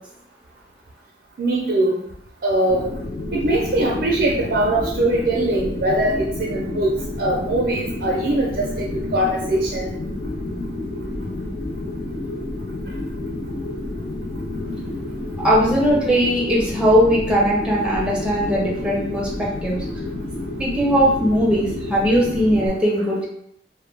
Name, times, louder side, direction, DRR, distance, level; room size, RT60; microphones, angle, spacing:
voice 1, 1.4-2.0 2.4-2.9 3.3-6.9 7.2-9.9, right 1 dB, 60° right, -3 dB, 0.4 m, -21 dB
sound 1, 2.7-22.7, left 2 dB, 45° left, 0.4 m, -30 dB
voice 2, 15.4-19.8 20.6-23.3, equal, 5° right, -5 dB, 0.5 m, -19 dB
2.1 x 2.1 x 3.2 m, 0.71 s
head